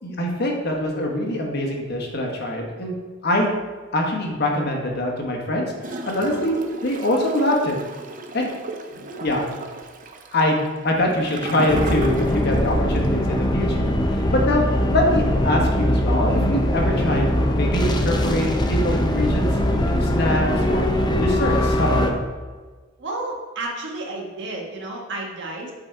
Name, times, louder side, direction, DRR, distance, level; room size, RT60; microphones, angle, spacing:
voice 1, 0.0-2.9 3.2-3.5 3.9-6.5 6.8-7.8 8.3-8.5 9.2-9.5 10.3-20.9 21.2-22.2, left 1 dB, 55° left, 1 dB, 1.3 m, -24 dB
Gurgling / Toilet flush, 5.8-12.7 13.0-13.1, right 2 dB, 45° right, 0.6 m, -34 dB
voice 2, 8.9-9.3 23.0-25.7, right 2 dB, 65° right, -1 dB, 1.4 m, -32 dB
sound 1, 11.7-22.1, left 1 dB, 20° left, 0.6 m, -21 dB
7.6 x 4.0 x 4.5 m, 1.4 s
head